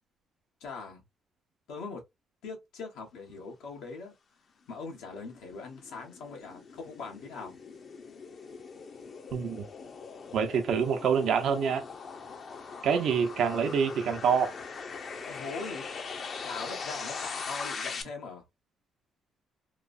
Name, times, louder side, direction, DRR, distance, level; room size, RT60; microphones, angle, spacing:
voice 1, 0.6-1.0 1.7-2.0 2.4-4.1 4.7-7.5 15.3-15.9 16.4-18.4, left 4 dB, 90° left, 1.1 m, -41 dB
sound 1, 4.8-18.0, left 5 dB, 50° left, 0.6 m, -41 dB
voice 2, 9.3-9.7 10.3-11.8 12.8-14.5, right 6 dB, 75° right, 0.6 m, -26 dB
3.0 x 2.0 x 2.4 m
cardioid pair, 90°, 0 cm